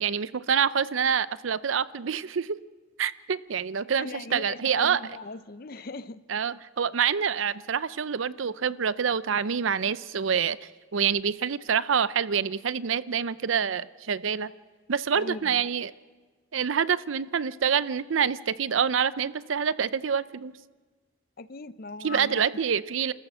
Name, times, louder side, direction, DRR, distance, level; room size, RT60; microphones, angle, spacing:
voice 1, 0.0-2.6 3.0-5.0 6.3-10.6 10.9-14.5 14.9-15.9 16.5-20.5 22.0-23.1, right 7 dB, 80° right, 0.5 m, -26 dB
voice 2, 4.0-6.2 15.1-15.6 21.4-22.4, left 3 dB, 50° left, 0.6 m, -39 dB
30.0 x 14.0 x 6.2 m
head